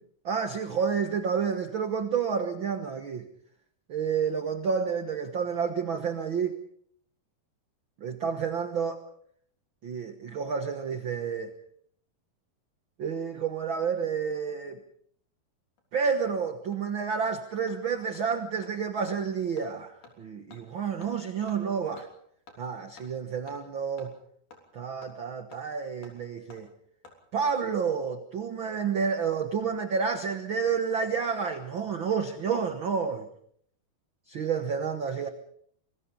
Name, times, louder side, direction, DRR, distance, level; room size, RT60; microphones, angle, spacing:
voice 1, 0.2-3.2 3.9-6.6 8.0-9.0 9.8-11.5 13.0-14.8 15.9-22.1 22.6-24.1 24.7-26.7 27.3-33.3 34.3-35.3, right 6 dB, 75° right, 8 dB, 1.1 m, -30 dB
Hammer, 15.8-15.9 16.3-16.4 16.7-16.8 17.2-17.3 17.7-17.8 18.1-18.2 18.6-18.7 19.1-19.2 19.6-19.7 20.0-20.1 20.5-20.6 21.0-21.1 21.5-21.6 22.0-22.1 22.5-22.6 23.0-23.1 23.5-23.6 24.0-24.1 24.5-24.6 25.0-25.1 25.5-25.6 26.0-26.1 26.5-26.6 27.0-27.2 27.6-27.7 28.6-29.0 29.2-29.3, left 3 dB, 60° left, 4.8 m, -52 dB
26.0 x 20.5 x 5.4 m, 0.63 s
omnidirectional pair, 4.3 m